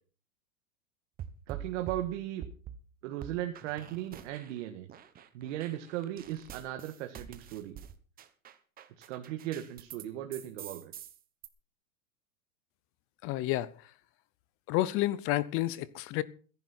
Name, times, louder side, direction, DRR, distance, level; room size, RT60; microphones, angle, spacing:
sound 1, 1.2-2.8 3.2-4.6 4.9-10.0 10.3-11.5, right 9 dB, 20° right, 1.1 m, -46 dB
voice 1, 1.5-2.4 3.0-4.9 5.3-7.8 9.1-10.9, right 13 dB, 55° right, 1.7 m, -37 dB
voice 2, 13.2-13.7 14.7-16.2, left 15 dB, 30° left, 0.7 m, -30 dB
21.0 x 11.0 x 4.4 m
supercardioid pair, 140°, 43 cm